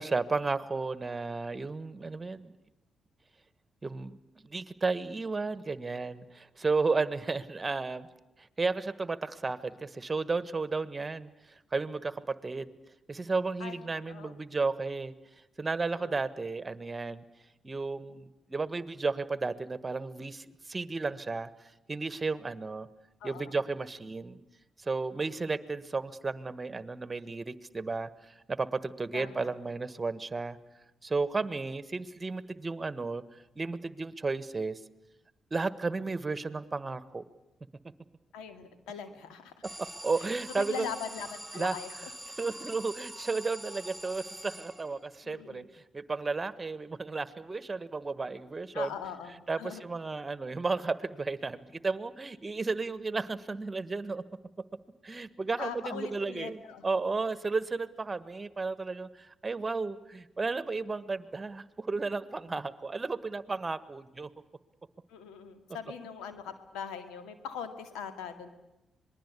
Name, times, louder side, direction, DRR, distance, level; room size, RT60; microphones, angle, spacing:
voice 1, 0.0-2.5 3.8-4.2 4.4-8.1 8.4-12.7 13.1-15.1 15.6-17.2 17.6-22.9 23.2-24.4 24.8-30.6 31.0-33.2 33.5-34.8 35.5-37.2 40.0-40.9 41.5-41.8 42.4-48.9 49.5-54.2 55.0-64.3, right 3 dB, 30° right, 15 dB, 1.5 m, -33 dB
voice 2, 13.6-14.4 15.9-16.2 23.2-23.5 25.1-25.4 29.1-29.6 38.3-39.5 40.6-42.0 45.2-45.7 48.7-49.8 55.6-56.9 65.1-68.5, left 7 dB, 85° left, 9 dB, 2.1 m, -41 dB
Alarm, 39.6-45.2, right 1 dB, 5° right, 3.3 m, -44 dB
26.5 x 20.5 x 8.4 m, 0.93 s
supercardioid pair, 50°, 0 cm